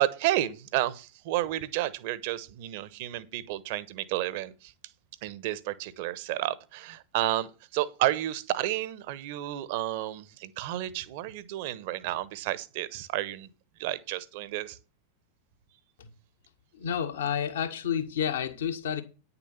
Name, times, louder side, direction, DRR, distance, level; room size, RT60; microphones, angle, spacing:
voice 1, 0.0-4.7 5.2-13.5 13.8-14.8, right 14 dB, 50° right, 1.0 m, -31 dB
voice 2, 16.7-19.0, left 8 dB, 60° left, 1.6 m, -30 dB
9.9 x 7.0 x 5.7 m
figure-of-eight pair, 90°, 0 cm